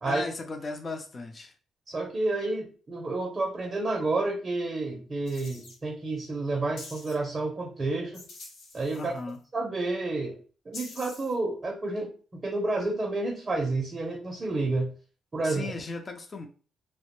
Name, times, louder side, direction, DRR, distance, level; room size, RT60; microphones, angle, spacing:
voice 1, 0.0-1.5 8.9-9.4 15.4-16.5, left 3 dB, 35° left, 5 dB, 0.5 m, -36 dB
voice 2, 1.9-8.2 8.7-9.1 9.5-10.4 10.7-14.9 15.3-15.7, right 2 dB, 30° right, 1 dB, 0.5 m, -30 dB
sound 1, 5.3-5.8 6.8-7.1 8.1-9.4 10.7-11.3, left 3 dB, 80° left, 0.8 m, -45 dB
2.2 x 2.1 x 2.9 m, 0.38 s
cardioid pair, 90°, 0 cm